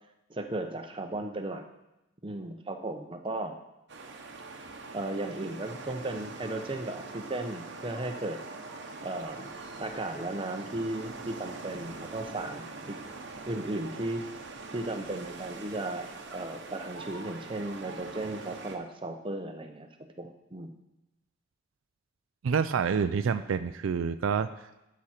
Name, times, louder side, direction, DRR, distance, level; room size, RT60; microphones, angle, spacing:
voice 1, 0.3-1.7 2.2-3.5 4.9-8.4 9.0-13.0 13.5-14.2 14.7-19.9 20.2-20.8, right 2 dB, 25° right, 5 dB, 0.7 m, -35 dB
sound 1, 3.9-18.8, right 3 dB, 60° right, 1.0 m, -43 dB
voice 2, 22.4-24.9, right 6 dB, 75° right, 12 dB, 0.4 m, -28 dB
12.5 x 6.1 x 4.3 m, 0.93 s
head